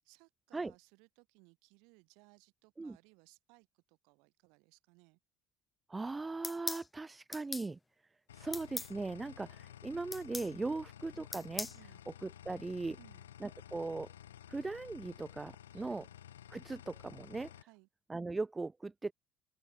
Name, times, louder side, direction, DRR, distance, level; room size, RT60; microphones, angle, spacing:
voice 1, 0.0-5.2 10.7-10.8 11.7-12.0 13.0-13.3 15.7-16.1 17.6-17.9, right 31 dB, 65° right, 5.3 m, -64 dB
voice 2, 5.9-7.8 8.3-11.7 12.2-13.0 13.4-14.1 14.5-16.0 16.5-17.5 18.1-19.1, right 3 dB, 20° right, 0.4 m, -39 dB
sound 1, 6.4-6.9 7.3-7.7 8.5-8.9 10.1-10.5 11.3-11.8, left 3 dB, 20° left, 0.7 m, -39 dB
sound 2, 8.3-17.6, left 11 dB, 80° left, 5.1 m, -53 dB
open air
figure-of-eight pair, 60°, 0 cm